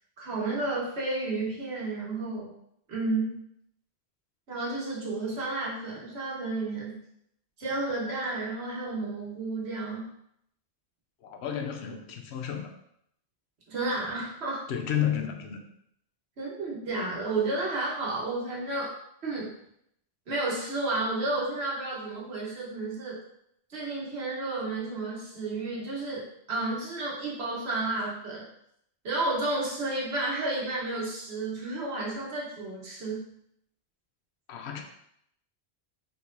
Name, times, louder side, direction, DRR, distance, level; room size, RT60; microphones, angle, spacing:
voice 1, 0.2-2.5 2.9-3.5 4.5-7.0 7.6-10.1 13.7-14.7 16.4-18.9 19.2-19.6 20.3-23.2 23.7-28.5 29.0-33.3, right 2 dB, 80° right, -4 dB, 1.5 m, -32 dB
voice 2, 11.2-12.7 14.7-15.7 34.5-34.8, left 9 dB, 85° left, 5 dB, 0.9 m, -31 dB
4.3 x 3.9 x 2.6 m, 0.73 s
omnidirectional pair, 1.1 m